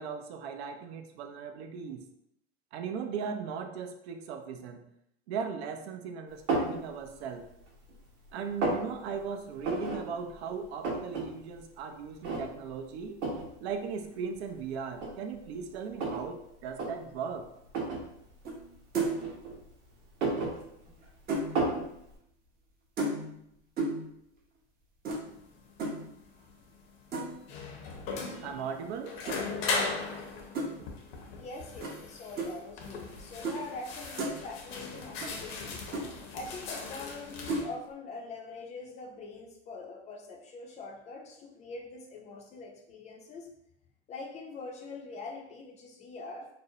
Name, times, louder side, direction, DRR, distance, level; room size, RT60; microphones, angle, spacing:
voice 1, 0.0-2.1 2.7-4.8 5.3-7.5 8.3-13.2 13.6-17.5 28.3-29.2, right 6 dB, 70° right, 6 dB, 0.5 m, -38 dB
Setting Coffee Cup Down, 6.5-6.8 7.3-8.0 8.3-8.9 9.6-10.0 10.3-10.4 10.6-11.3 11.6-11.7 12.2-12.7 13.2-13.5 14.3-14.4 14.9-16.3 16.7-16.9 17.7-18.1 19.0-19.7 20.0-21.1 21.6-21.9, right 3 dB, 85° right, 0.8 m, -31 dB
sound 1, 18.4-18.7 18.9-19.3 20.5-21.5 23.0-23.4 23.8-24.1 25.0-25.2 25.8-26.0 27.1-27.4 29.2-29.4 30.5-30.7 31.8-32.0 32.4-32.5 33.4-33.6 33.9-34.4 35.2-35.3 35.6-35.7 35.9-36.1 37.5-37.7, right 2 dB, 25° right, 0.6 m, -32 dB
sound 2, 25.3-37.6, left 4 dB, 60° left, 0.7 m, -38 dB
voice 2, 31.4-35.8 36.3-43.5 44.1-46.5, left 3 dB, 20° left, 0 dB, 0.4 m, -43 dB
2.5 x 2.0 x 2.7 m, 0.77 s
supercardioid pair, 120°, 33 cm